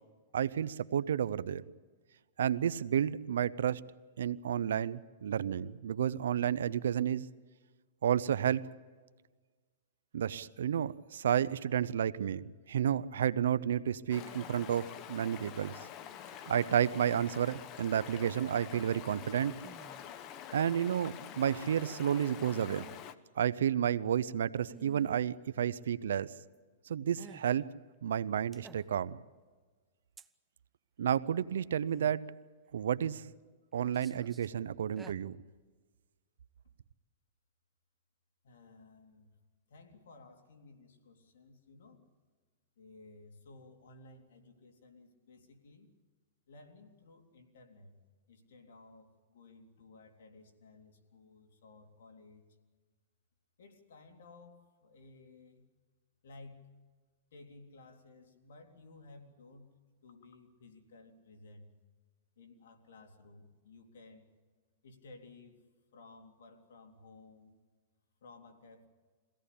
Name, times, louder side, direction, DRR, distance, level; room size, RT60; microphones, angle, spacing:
voice 1, 0.3-1.6 2.4-3.9 4.2-7.3 8.0-8.7 10.1-15.7 16.5-19.5 20.5-22.9 23.4-26.3 26.9-27.7 28.0-29.2 31.0-32.3 32.7-33.2 33.7-35.4, right 9 dB, 85° right, 16 dB, 0.7 m, -31 dB
Stream, 14.1-23.1, left 10 dB, 35° left, 1.1 m, -47 dB
sound 1, 19.6-20.1 22.4-23.0 24.7-25.2 27.2-27.6 28.5-29.1 30.2-30.3 31.9-32.2 32.9-33.4 33.8-34.5 34.8-35.1, right 4 dB, 10° right, 0.7 m, -54 dB
voice 2, 38.4-39.3 39.7-42.0 42.8-45.9 46.5-47.9 48.3-52.4 53.6-55.7 56.2-56.7 57.3-59.7 60.0-61.7 62.4-64.3 64.8-65.6 65.9-67.5 68.2-68.9, left 3 dB, 80° left, 3 dB, 3.4 m, -56 dB
23.5 x 17.0 x 8.6 m, 1.4 s
hypercardioid pair, 145°, 0 cm